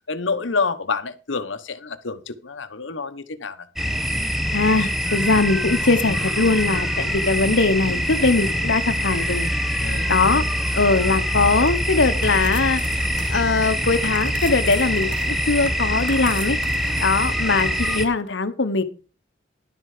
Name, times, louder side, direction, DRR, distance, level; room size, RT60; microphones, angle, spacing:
voice 1, 0.1-3.7 9.8-10.1 17.9-18.0, left 4 dB, 90° left, 11 dB, 1.1 m, -28 dB
sound 1, 3.8-18.1, equal, ahead, 1.1 m, -24 dB
voice 2, 4.5-9.5 10.1-10.4 10.8-16.6 17.0-18.8, left 3 dB, 70° left, 11 dB, 1.2 m, -21 dB
sound 2, 11.5-17.6, right 6 dB, 65° right, 0.9 m, -40 dB
11.5 x 7.8 x 5.0 m, 0.34 s
head